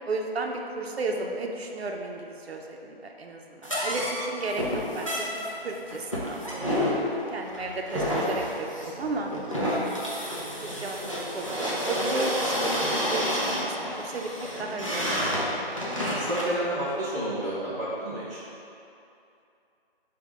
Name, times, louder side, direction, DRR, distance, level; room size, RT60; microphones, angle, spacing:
voice 1, 0.0-9.3 10.8-15.3, right 3 dB, 80° right, 2 dB, 0.6 m, -34 dB
sound 1, 3.6-16.6, equal, 35° left, 0.4 m, -29 dB
voice 2, 16.1-18.4, right 1 dB, 35° right, -14 dB, 0.8 m, -30 dB
4.2 x 2.3 x 4.4 m, 2.7 s
figure-of-eight pair, 175°, 31 cm